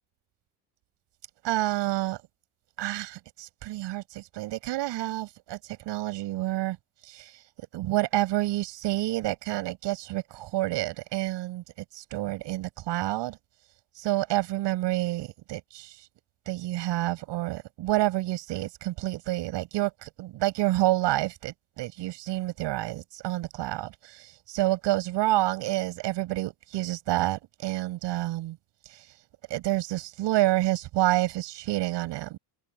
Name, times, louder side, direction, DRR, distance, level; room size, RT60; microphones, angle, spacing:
voice 1, 1.4-2.2 2.8-5.6 5.8-6.8 7.1-7.3 7.7-11.6 11.9-13.4 14.0-15.9 16.5-28.6 29.5-32.4, right 16 dB, 75° right, 6.5 m, -28 dB
open air
cardioid pair, 135°, 43 cm